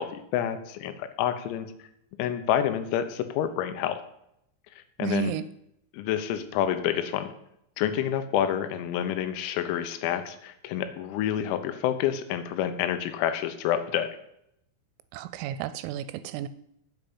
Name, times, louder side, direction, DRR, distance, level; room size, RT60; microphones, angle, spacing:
voice 1, 0.0-1.7 2.2-4.0 5.0-5.3 5.9-7.3 7.8-14.1, left 10 dB, 90° left, 10 dB, 3.7 m, -28 dB
voice 2, 5.0-5.4 15.1-16.5, right 13 dB, 85° right, 13 dB, 3.1 m, -32 dB
8.9 x 8.0 x 7.9 m, 0.77 s
omnidirectional pair, 6.0 m